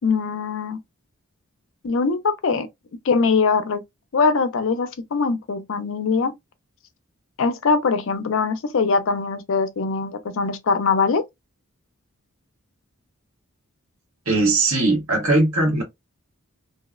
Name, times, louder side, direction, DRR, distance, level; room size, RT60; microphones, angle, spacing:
voice 1, 0.0-0.8 1.8-2.7 3.0-3.8 4.1-6.3 7.4-11.2, left 4 dB, 60° left, 0.4 m, -22 dB
voice 2, 14.3-15.8, right 2 dB, 75° right, 1.1 m, -19 dB
2.7 x 2.0 x 2.3 m
head